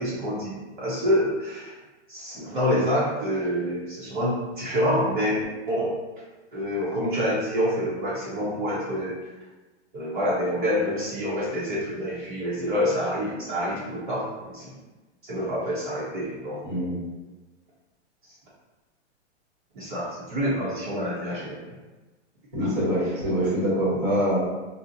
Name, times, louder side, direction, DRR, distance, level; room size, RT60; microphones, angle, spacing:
voice 1, 0.0-1.7 2.1-5.9 6.5-9.2 9.9-14.8 15.2-16.6 18.2-18.3 19.7-21.6 22.6-22.7, equal, 45° right, -8 dB, 0.8 m, -27 dB
voice 2, 16.6-17.0 22.5-24.4, equal, 15° right, -11 dB, 1.0 m, -24 dB
2.7 x 2.0 x 3.8 m, 1.2 s
hypercardioid pair, 180°, 35 cm